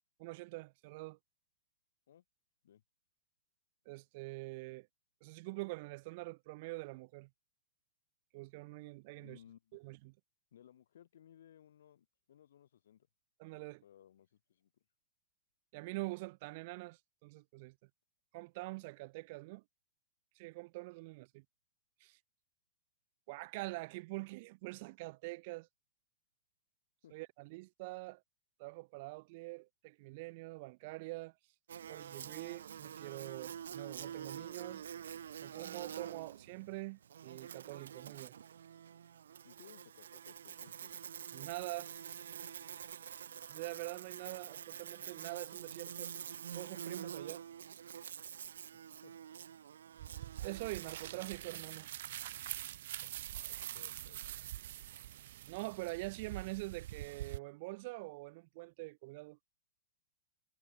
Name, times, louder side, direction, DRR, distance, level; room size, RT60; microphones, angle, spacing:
voice 1, 0.2-1.2 3.8-4.9 5.2-7.3 8.3-9.4 9.7-10.1 13.4-13.8 15.7-17.7 18.3-19.6 20.3-21.4 22.0-22.2 23.3-25.7 27.1-28.2 28.6-31.3 31.9-34.8 35.4-38.4 41.3-41.9 43.5-46.1 46.5-47.4 50.4-51.9 55.5-59.4, right 24 dB, 45° right, 1.5 m, -45 dB
voice 2, 9.1-9.8 10.5-13.1 13.5-14.7 27.0-27.1 39.4-40.9 48.7-49.1 53.2-54.3, left 10 dB, 70° left, 6.6 m, -61 dB
Buzz, 31.7-51.5, right 8 dB, 80° right, 1.0 m, -47 dB
sound 1, 50.0-57.4, right 13 dB, 60° right, 1.7 m, -45 dB
hypercardioid pair, 145°, 0 cm